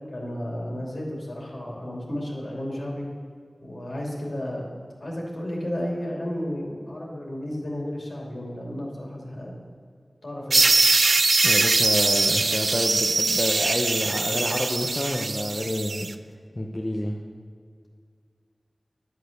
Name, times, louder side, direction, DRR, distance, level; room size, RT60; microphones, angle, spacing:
voice 1, 0.0-3.1 3.6-4.6 5.0-9.6 10.2-10.6 14.3-14.4, left 1 dB, 60° left, -2 dB, 2.7 m, -33 dB
sound 1, 10.5-16.1, right 3 dB, 75° right, 0.4 m, -22 dB
voice 2, 11.4-16.1 16.5-17.2, left 1 dB, 30° left, 1 dB, 0.8 m, -28 dB
10.5 x 6.5 x 6.6 m, 2.2 s
wide cardioid pair, 50°, 0 cm